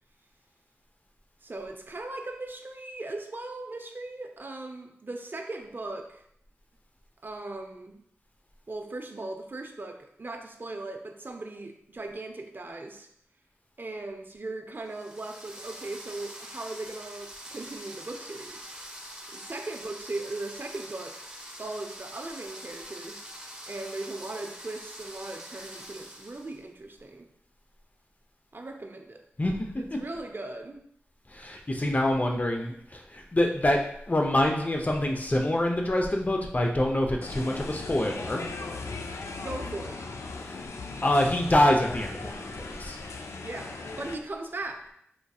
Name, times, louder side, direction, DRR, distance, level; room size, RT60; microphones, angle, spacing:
voice 1, 1.4-6.2 7.2-8.0 8.7-13.1 13.8-18.7 19.3-21.2 21.6-23.2 23.7-27.3 28.5-29.2 30.0-30.8 39.4-40.0 43.4-44.8, right 2 dB, 45° right, 4 dB, 0.5 m, -38 dB
sound 1, 14.9-26.6, right 1 dB, 15° right, 0.8 m, -44 dB
voice 2, 31.3-33.8 34.1-38.4 40.4-40.6 41.0-43.0, left 1 dB, 35° left, 2 dB, 0.6 m, -26 dB
sound 2, 37.2-44.2, left 3 dB, 85° left, 0.3 m, -38 dB
4.4 x 2.6 x 2.3 m, 0.71 s
cardioid pair, 40°, 5 cm